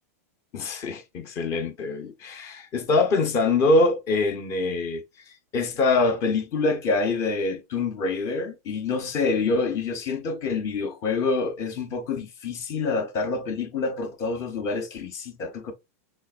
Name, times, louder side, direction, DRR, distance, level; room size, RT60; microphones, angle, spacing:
voice 1, 0.5-5.0 5.5-15.7, left 3 dB, 35° left, 1.0 m, -25 dB
5.5 x 3.4 x 2.5 m
supercardioid pair, 140°, 8 cm